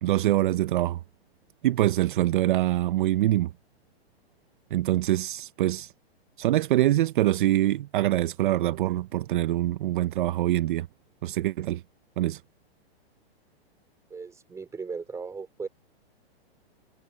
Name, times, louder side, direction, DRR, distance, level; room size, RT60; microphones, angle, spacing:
voice 1, 0.0-1.0 1.6-3.5 4.7-5.9 6.4-10.9 11.2-11.8 12.2-12.4, right 14 dB, 50° right, 0.7 m, -24 dB
voice 2, 14.1-15.7, right 5 dB, 10° right, 5.0 m, -37 dB
hypercardioid pair, 155°, 31 cm